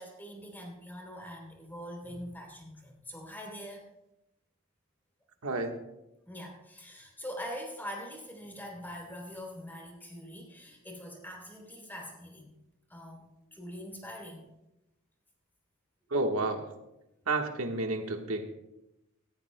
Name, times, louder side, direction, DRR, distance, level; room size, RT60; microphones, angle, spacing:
voice 1, 0.0-3.9 6.3-12.5 12.9-14.5, equal, 10° left, 0 dB, 3.1 m, -43 dB
voice 2, 5.4-5.7 16.1-16.7 17.3-18.5, right 2 dB, 85° right, 4 dB, 1.4 m, -30 dB
17.0 x 16.0 x 2.2 m, 0.91 s
head